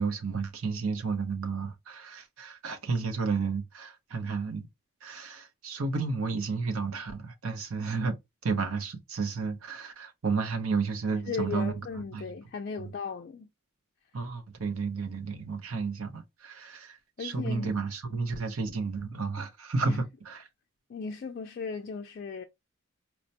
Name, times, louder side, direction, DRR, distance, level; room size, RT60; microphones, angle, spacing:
voice 1, 0.0-4.7 5.0-8.2 8.4-11.7 12.1-12.2 12.8-12.9 14.1-20.4, right 4 dB, 80° right, 0.7 m, -32 dB
voice 2, 11.1-13.5 17.2-17.8 19.8-20.0 20.9-22.4, left 5 dB, 45° left, 0.3 m, -36 dB
4.4 x 2.1 x 2.7 m
head